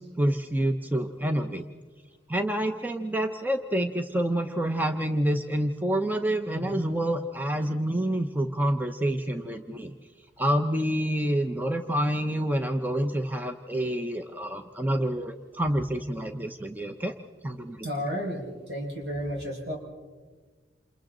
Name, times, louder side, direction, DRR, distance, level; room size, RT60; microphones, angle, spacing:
voice 1, 0.0-1.7 2.3-9.9 10.4-17.1 17.4-18.1, right 1 dB, 10° right, 6 dB, 0.7 m, -28 dB
voice 2, 17.8-19.8, equal, 65° right, -1 dB, 5.9 m, -32 dB
28.5 x 28.0 x 3.9 m, 1.4 s
head